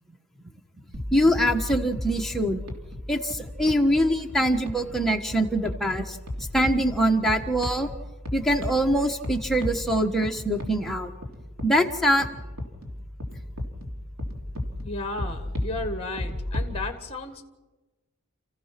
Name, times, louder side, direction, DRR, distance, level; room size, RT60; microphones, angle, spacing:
sound 1, 0.9-16.8, left 1 dB, 70° right, 3.2 m, -35 dB
voice 1, 1.1-2.6 3.1-6.2 6.5-7.9 8.3-11.1 11.6-12.3, equal, ahead, 2 dB, 1.3 m, -23 dB
voice 2, 14.8-17.4, left 2 dB, 25° left, 5 dB, 1.7 m, -33 dB
29.5 x 15.0 x 6.0 m, 1.1 s
head